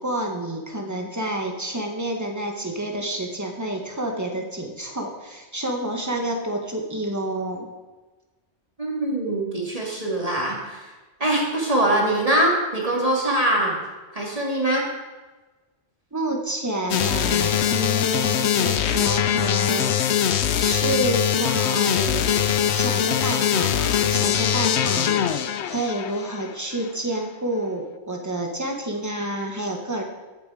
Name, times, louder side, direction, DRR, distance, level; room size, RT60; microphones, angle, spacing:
voice 1, 0.0-7.7 16.1-20.0 20.6-30.0, right 1 dB, 15° right, 2 dB, 1.6 m, -29 dB
voice 2, 8.8-10.9 11.2-13.7 14.1-14.8, right 1 dB, 30° right, -3 dB, 2.7 m, -23 dB
sound 1, 16.9-26.5, left 9 dB, 70° left, 0.9 m, -22 dB
15.0 x 8.1 x 5.1 m, 1.2 s
omnidirectional pair, 1.2 m